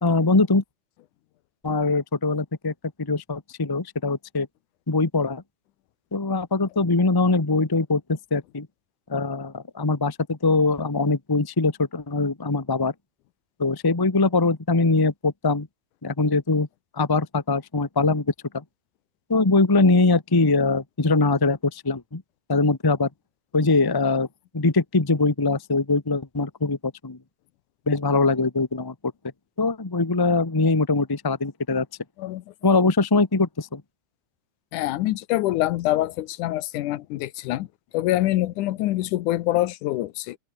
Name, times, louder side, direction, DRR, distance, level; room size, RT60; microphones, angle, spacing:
voice 1, 0.0-0.6 1.6-4.5 4.9-5.4 6.1-8.7 9.1-12.9 13.6-15.7 16.0-16.7 16.9-18.6 19.3-22.2 22.5-23.1 23.5-24.3 24.5-27.2 27.9-28.9 29.6-31.9 32.6-33.8, left 3 dB, 15° left, 0.7 m, -22 dB
voice 2, 34.7-37.7 37.9-40.4, left 15 dB, 85° left, 2.4 m, -25 dB
omnidirectional pair, 3.5 m